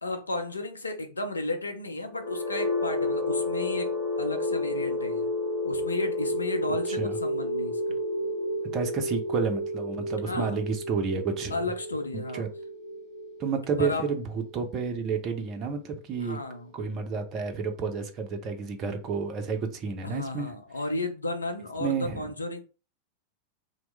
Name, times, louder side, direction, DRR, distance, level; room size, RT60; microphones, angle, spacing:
voice 1, 0.0-5.3 5.6-8.0 10.2-10.6 11.5-12.5 13.8-14.1 16.2-16.7 20.0-22.6, left 2 dB, 80° left, 0.6 m, -33 dB
sound 1, 2.1-16.0, left 1 dB, 20° left, 1.4 m, -31 dB
voice 2, 8.7-11.6 12.1-12.5 13.4-16.4 16.7-20.5 21.8-22.3, right 5 dB, 30° right, 0.6 m, -30 dB
2.9 x 2.1 x 3.3 m
figure-of-eight pair, 90°, 0 cm